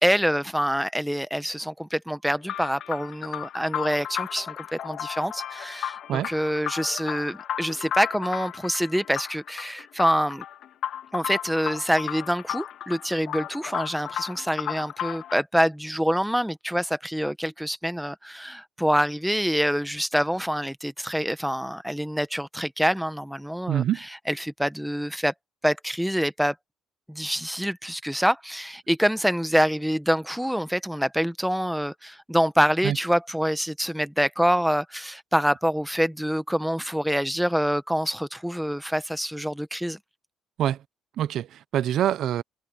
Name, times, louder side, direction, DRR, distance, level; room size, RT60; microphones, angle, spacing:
voice 1, 0.0-10.4 11.1-23.8 24.3-25.3 25.6-26.5 27.1-40.0, equal, ahead, 1.1 m, -26 dB
sound 1, 2.4-15.4, left 10 dB, 60° left, 3.1 m, -34 dB
voice 2, 23.7-24.0 32.8-33.0 40.6-40.8 41.2-42.4, right 11 dB, 60° right, 0.6 m, -25 dB
cardioid pair, 115°, 0 cm